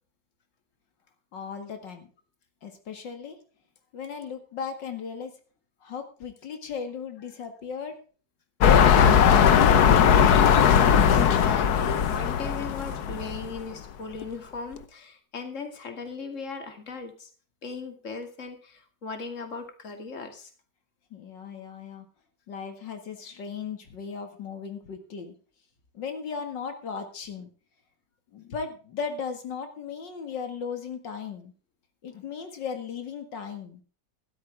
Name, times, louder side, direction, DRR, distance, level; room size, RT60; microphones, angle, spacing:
voice 1, 1.3-2.1 2.6-3.4 3.9-5.3 5.8-7.9 21.1-22.1 22.5-25.3 25.9-27.5 28.3-31.5 32.0-33.8, left 6 dB, 85° left, 6 dB, 2.6 m, -36 dB
sound 1, 8.6-13.6 14.2-14.3, left 8 dB, 65° left, 1.4 m, -19 dB
voice 2, 11.1-17.3 17.6-20.5, left 4 dB, 45° left, 6 dB, 2.6 m, -38 dB
14.5 x 13.0 x 3.5 m, 0.39 s
omnidirectional pair, 1.9 m